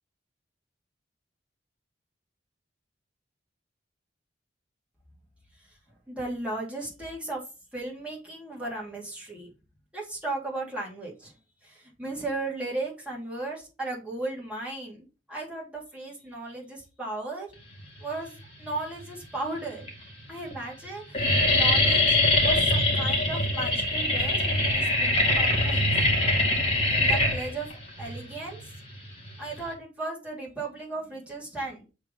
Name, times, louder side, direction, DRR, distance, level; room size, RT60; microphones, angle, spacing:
voice 1, 6.1-7.4 7.7-9.5 9.9-11.3 11.6-17.5 18.0-18.3 18.6-19.9 20.3-22.2 22.4-25.9 26.9-27.7 28.0-28.6 29.4-31.9, right 2 dB, 5° right, -4 dB, 3.1 m, -36 dB
sound 1, 18.6-19.1 19.8-19.9 20.2-20.5 20.8-29.7, left 1 dB, 30° left, 2.0 m, -23 dB
7.1 x 3.8 x 5.0 m, 0.31 s
head